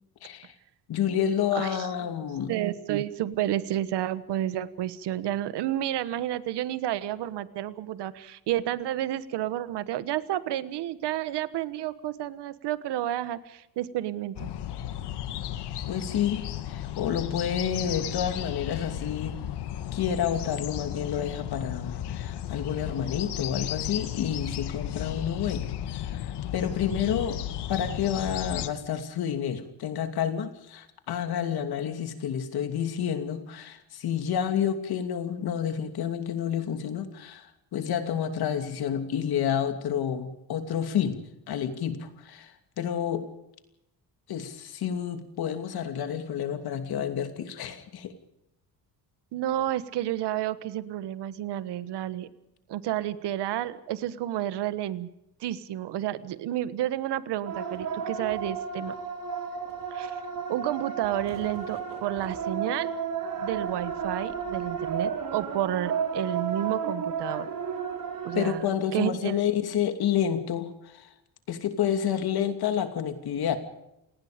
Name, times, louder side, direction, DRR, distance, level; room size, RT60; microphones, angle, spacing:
voice 1, 0.2-0.5 0.9-2.5 15.9-19.4 19.9-27.4 27.7-41.2 41.5-43.3 44.3-48.1 68.3-71.1 71.5-73.6, left 9 dB, 65° left, 7 dB, 2.8 m, -29 dB
voice 2, 2.5-14.5 49.3-52.3 52.7-55.1 55.4-58.9 59.9-60.2 60.5-62.9 63.4-67.5 68.2-69.4, right 12 dB, 90° right, 14 dB, 1.4 m, -30 dB
sound 1, 14.4-28.7, left 11 dB, 80° left, 1.7 m, -34 dB
sound 2, 57.5-68.5, right 6 dB, 55° right, 4.8 m, -33 dB
28.0 x 19.5 x 5.1 m, 0.86 s
cardioid pair, 155°, 40 cm